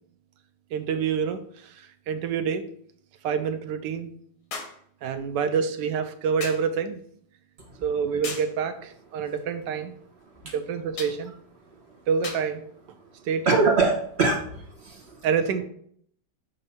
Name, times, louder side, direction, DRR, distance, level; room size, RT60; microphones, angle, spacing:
sound 1, 0.7-0.8 4.5-4.9 6.4-6.7 8.2-8.6 11.0-11.2 12.2-12.5 13.6-13.7, left 4 dB, 85° left, 1.7 m, -36 dB
voice 1, 0.7-2.6 3.2-4.1 5.0-7.0 7.8-10.0 10.5-11.3 12.1-12.6 13.2-13.7 15.2-15.6, right 6 dB, 80° right, 8 dB, 1.3 m, -27 dB
voice 2, 13.4-15.3 15.6-15.7, right 3 dB, 45° right, 1 dB, 1.0 m, -24 dB
6.2 x 2.8 x 5.5 m, 0.63 s
omnidirectional pair, 1.8 m